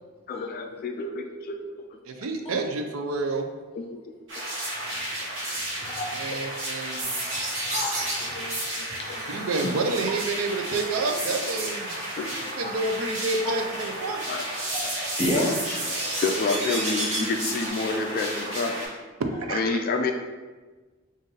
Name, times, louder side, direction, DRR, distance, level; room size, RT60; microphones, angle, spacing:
voice 1, 0.3-2.0 3.7-4.0 4.4-4.5 6.3-6.4 8.2-9.2 12.2-12.5 14.3-14.4 14.8-14.9 16.0-18.9 19.5-20.1, left 3 dB, 45° left, 4 dB, 0.3 m, -29 dB
voice 2, 2.0-3.5 6.2-7.1 9.3-12.1 12.6-14.2 19.4-19.8, right 3 dB, 90° right, 4 dB, 0.5 m, -29 dB
sound 1, 4.3-18.9, right 1 dB, 65° right, 1.2 m, -32 dB
voice 3, 5.5-6.3 7.3-8.4 9.0-9.3 12.6-12.8 15.2-15.5, left 1 dB, 30° left, -3 dB, 0.9 m, -31 dB
sound 2, 7.0-17.7, right 1 dB, 35° right, 1.0 m, -37 dB
3.8 x 2.5 x 3.9 m, 1.3 s
head